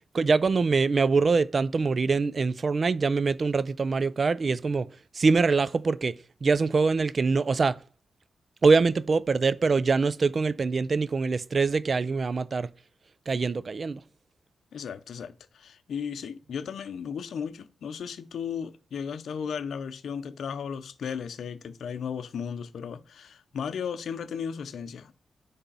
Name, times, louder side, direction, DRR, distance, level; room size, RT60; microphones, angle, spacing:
voice 1, 0.0-4.9 5.1-6.2 6.4-7.8 8.6-12.7 13.3-14.0, right 4 dB, 45° right, 0.3 m, -24 dB
voice 2, 14.7-25.1, left 7 dB, 80° left, 0.6 m, -35 dB
9.8 x 3.4 x 4.0 m
cardioid pair, 95°, 0 cm